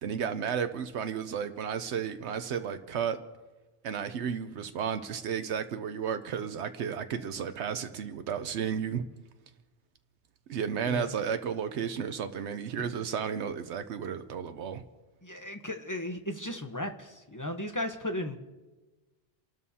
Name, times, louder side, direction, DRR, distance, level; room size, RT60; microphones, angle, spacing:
voice 1, 0.0-3.2 3.8-9.1 10.5-14.8, right 7 dB, 80° right, 9 dB, 1.0 m, -33 dB
voice 2, 15.2-18.4, left 1 dB, 20° left, 5 dB, 0.8 m, -35 dB
29.5 x 12.5 x 2.8 m, 1.2 s
omnidirectional pair, 1.1 m